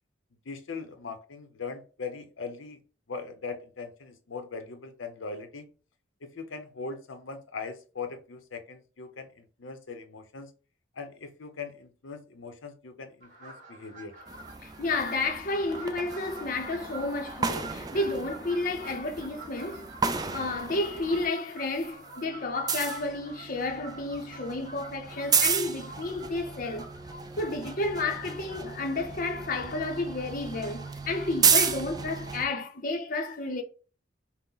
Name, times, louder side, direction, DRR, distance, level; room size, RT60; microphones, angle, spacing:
voice 1, 0.5-2.8 3.1-5.7 6.2-10.5 11.0-14.1, left 4 dB, 85° left, 0.7 m, -40 dB
sound 1, 13.2-31.6, right 2 dB, 45° right, 1.8 m, -48 dB
sound 2, 14.3-21.3 21.6-32.4, right 6 dB, 20° right, 0.4 m, -32 dB
voice 2, 14.6-26.9 27.4-33.6, left 2 dB, 45° left, 0.6 m, -31 dB
5.8 x 2.1 x 3.9 m
head